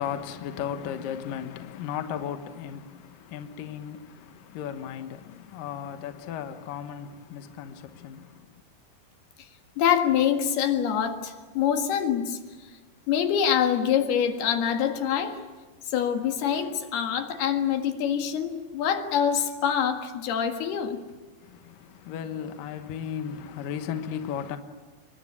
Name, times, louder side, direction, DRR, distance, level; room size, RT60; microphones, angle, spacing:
voice 1, 0.0-8.5 21.4-24.6, left 8 dB, 70° left, 2.7 m, -35 dB
voice 2, 9.8-12.4 13.1-15.4 15.9-21.0, left 8 dB, 85° left, 3.8 m, -25 dB
27.5 x 23.0 x 8.5 m
omnidirectional pair, 4.4 m